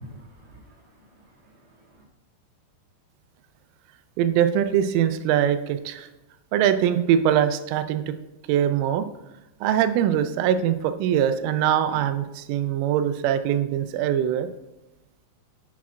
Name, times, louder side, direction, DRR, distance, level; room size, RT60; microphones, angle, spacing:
voice 1, 0.0-2.0, equal, 50° right, -7 dB, 1.1 m, -48 dB
voice 2, 4.2-6.1 6.5-8.1 8.5-9.1 9.6-14.5, right 10 dB, 85° right, 9 dB, 3.0 m, -22 dB
10.0 x 8.4 x 2.4 m, 1.0 s
omnidirectional pair, 5.7 m